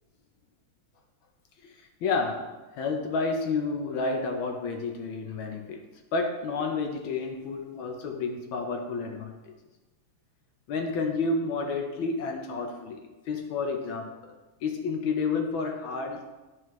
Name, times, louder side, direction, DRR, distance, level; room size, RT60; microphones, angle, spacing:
voice 1, 1.6-2.5 2.8-5.8 6.1-9.3 10.7-13.0 13.3-14.1 14.6-16.3, left 4 dB, 70° left, 3 dB, 1.4 m, -30 dB
11.0 x 4.7 x 3.1 m, 1.1 s
omnidirectional pair, 2.4 m